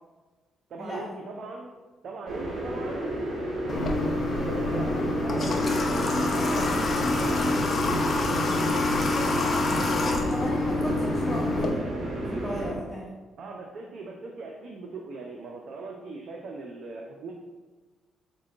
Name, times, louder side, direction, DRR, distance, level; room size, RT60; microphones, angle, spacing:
voice 1, 0.7-1.7 2.0-3.1 3.6-7.4 9.2-9.5 13.4-17.3, right 3 dB, 60° right, 0 dB, 0.5 m, -39 dB
sound 1, 2.3-12.7, right 1 dB, 45° right, 1.2 m, -32 dB
Water / Water tap faucet, 3.7-11.7, left 2 dB, 40° left, 0.6 m, -26 dB
voice 2, 9.3-11.8 12.3-13.1, equal, 5° left, -7 dB, 1.0 m, -36 dB
4.8 x 2.2 x 3.8 m, 1.2 s
cardioid pair, 90°, 0 cm